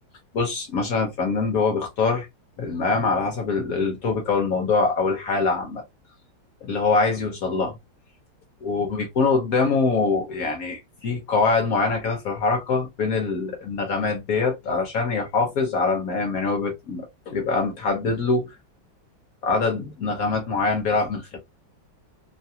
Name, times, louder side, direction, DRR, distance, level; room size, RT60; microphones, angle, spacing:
voice 1, 0.3-2.3 2.6-5.8 6.6-7.8 8.6-18.5 19.4-21.4, left 4 dB, 60° left, 1.0 m, -24 dB
3.2 x 2.3 x 2.7 m
omnidirectional pair, 2.2 m